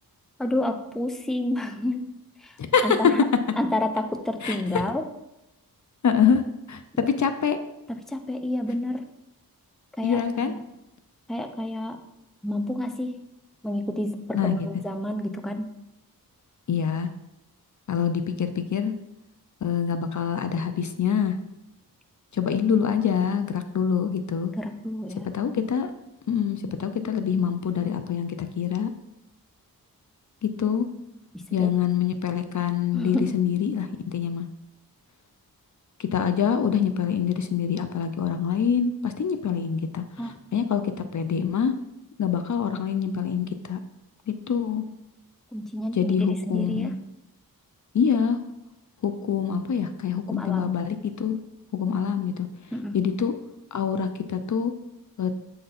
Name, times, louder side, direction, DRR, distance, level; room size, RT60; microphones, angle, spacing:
voice 1, 0.4-2.1 2.4-2.6 2.8-3.2 3.6-5.1 6.9-7.1 7.9-9.0 10.0-10.6 11.3-12.0 12.4-13.2 13.6-15.7 24.5-25.3 31.3-31.7 32.9-33.3 40.2-40.4 45.5-46.9 50.3-50.7 52.7-53.0, left 1 dB, ahead, 6 dB, 0.5 m, -29 dB
voice 2, 6.0-6.4 6.7-6.8 7.2-7.6 10.0-10.5 14.3-14.6 16.7-17.1 17.9-18.9 19.6-21.3 22.3-24.5 25.3-25.9 26.3-28.9 30.4-30.9 31.5-34.5 36.0-40.0 40.5-40.8 41.1-41.7 42.2-43.8 44.3-44.8 45.9-46.9 47.9-48.4 49.0-51.4 51.7-52.5 52.9-53.3 53.7-54.7 55.2-55.3, left 7 dB, 55° left, 8 dB, 0.5 m, -25 dB
7.7 x 3.9 x 4.1 m, 0.89 s
wide cardioid pair, 85°, 36 cm